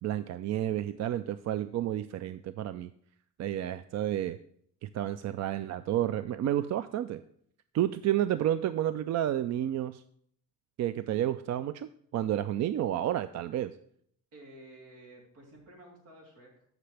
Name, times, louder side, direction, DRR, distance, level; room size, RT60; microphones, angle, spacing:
voice 1, 0.0-2.9 3.4-4.4 4.8-7.2 7.7-10.0 10.8-13.8, right 12 dB, 60° right, 13 dB, 0.4 m, -31 dB
voice 2, 14.3-16.6, right 1 dB, 85° right, -2 dB, 3.4 m, -52 dB
13.5 x 6.0 x 3.4 m, 0.65 s
cardioid pair, 90°, 30 cm